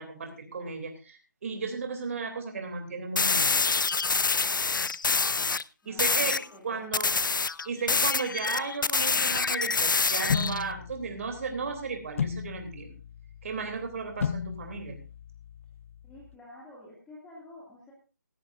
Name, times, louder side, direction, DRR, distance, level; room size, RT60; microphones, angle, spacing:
voice 1, 0.0-3.6 5.8-7.1 7.6-13.0 13.4-15.0, right 4 dB, 45° right, 5 dB, 3.1 m, -35 dB
sound 1, 3.2-5.6 6.0-6.5 6.9-10.6, left 4 dB, 85° left, 0.6 m, -26 dB
voice 2, 5.8-7.2 16.0-17.9, left 1 dB, 5° left, -6 dB, 2.4 m, -49 dB
sound 2, 10.3-16.3, left 7 dB, 40° left, 0.5 m, -35 dB
17.0 x 14.0 x 2.6 m, 0.32 s
figure-of-eight pair, 160°, 10 cm